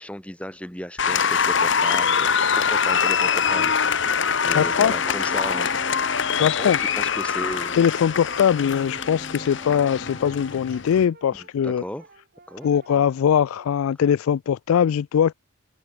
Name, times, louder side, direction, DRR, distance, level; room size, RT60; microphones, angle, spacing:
voice 1, 0.0-3.7 4.4-5.7 6.3-7.8 11.3-12.0 12.5-12.7, equal, 5° left, 1.8 m, -35 dB
Applause, 1.0-11.1, left 6 dB, 60° left, 1.3 m, -23 dB
voice 2, 4.5-4.9 6.4-6.8 7.7-11.8 12.6-15.3, left 8 dB, 90° left, 0.3 m, -21 dB
sound 1, 4.7-10.9, left 3 dB, 25° left, 0.9 m, -41 dB
Brass instrument, 8.2-13.8, right 3 dB, 45° right, 4.6 m, -52 dB
head